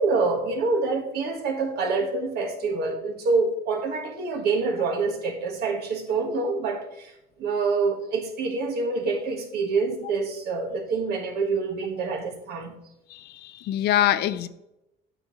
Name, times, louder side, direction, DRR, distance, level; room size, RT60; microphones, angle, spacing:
voice 1, 0.0-7.1 7.4-12.7, right 4 dB, 70° right, 1.5 m, -26 dB
voice 2, 13.1-14.5, left 12 dB, 75° left, 0.6 m, -24 dB
8.9 x 6.0 x 3.1 m
cardioid pair, 110°, 17 cm